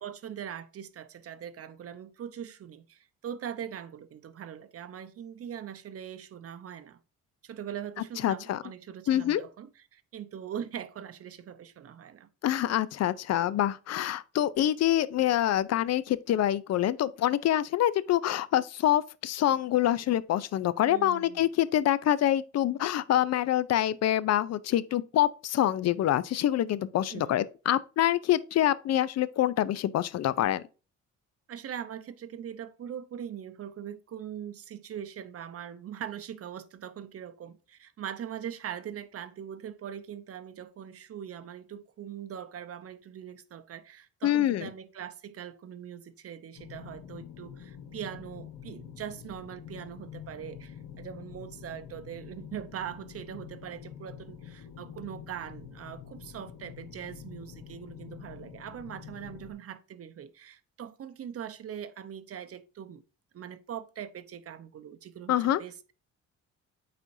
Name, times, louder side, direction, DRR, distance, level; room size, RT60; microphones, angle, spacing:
voice 1, 0.0-7.0 7.4-12.3 20.9-21.5 27.1-27.4 31.5-63.0 63.3-65.9, right 9 dB, 50° right, 0.8 m, -41 dB
voice 2, 8.2-8.6 9.1-9.4 12.4-30.6 44.2-44.7 65.3-65.6, left 12 dB, 60° left, 0.5 m, -26 dB
sound 1, 46.6-59.5, left 8 dB, 80° left, 1.2 m, -46 dB
9.0 x 4.3 x 2.7 m
cardioid pair, 90°, 30 cm